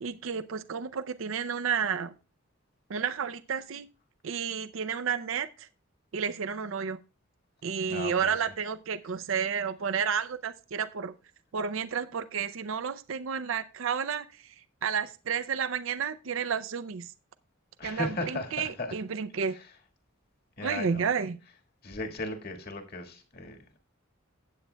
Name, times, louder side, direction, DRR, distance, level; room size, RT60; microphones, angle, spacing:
voice 1, 0.0-2.1 2.9-3.9 4.2-5.7 6.1-7.0 7.6-11.1 11.5-14.3 14.8-17.1 17.8-19.6 20.6-21.4, right 6 dB, 70° right, 12 dB, 0.5 m, -31 dB
voice 2, 7.9-8.4 17.8-18.9 19.5-19.7 20.6-21.1 21.8-23.8, left 2 dB, 50° left, 5 dB, 1.7 m, -36 dB
16.0 x 8.2 x 2.2 m, 0.33 s
head